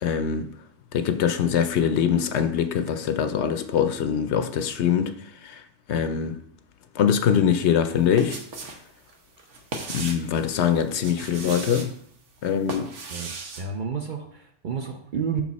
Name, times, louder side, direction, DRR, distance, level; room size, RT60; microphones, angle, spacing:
voice 1, 0.0-0.5 0.9-5.6 5.9-6.4 6.9-8.4 9.9-11.9 12.4-12.9, left 8 dB, 70° left, 0.8 m, -23 dB
sound 1, 7.9-8.8 9.1-10.3 10.9-11.9 12.4-13.6, right 3 dB, 75° right, 1.2 m, -36 dB
voice 2, 13.1-15.4, right 6 dB, 50° right, 0.6 m, -31 dB
5.7 x 4.7 x 4.0 m
omnidirectional pair, 1.2 m